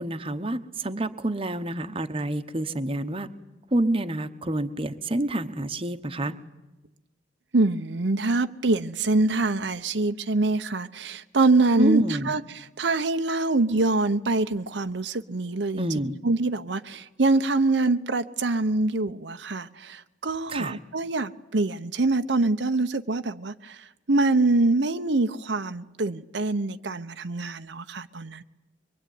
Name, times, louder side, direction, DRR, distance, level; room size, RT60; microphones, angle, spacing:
voice 1, 0.0-3.3 3.7-6.3 11.8-12.3 15.8-16.2 20.5-20.8, right 1 dB, 30° right, 1.1 m, -28 dB
voice 2, 7.5-15.9 16.2-28.4, right 2 dB, 70° right, 0.9 m, -25 dB
24.0 x 23.0 x 9.5 m
head